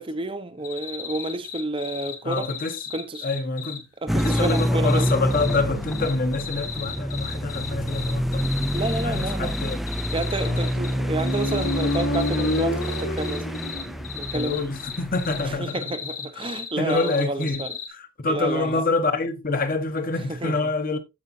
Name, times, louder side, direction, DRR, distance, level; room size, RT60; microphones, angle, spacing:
voice 1, 0.0-2.5 2.9-3.3 4.0-5.1 8.7-9.5 10.1-13.5 14.1-14.6 15.5-17.7 18.3-18.8 20.3-20.7, right 2 dB, 25° right, 0.7 m, -30 dB
sound 1, 0.6-3.8 4.2-5.6 5.9-10.9 11.2-17.9, left 8 dB, 90° left, 1.9 m, -35 dB
voice 2, 2.2-2.8 3.2-3.8 4.1-9.8 10.4-10.7 14.3-15.8 16.8-17.6 17.9-21.0, left 3 dB, 40° left, 1.2 m, -26 dB
sound 2, 4.1-15.6, equal, ahead, 0.4 m, -27 dB
Motorcycle, 10.5-14.2, left 1 dB, 60° left, 1.4 m, -29 dB
15.0 x 5.2 x 2.7 m
head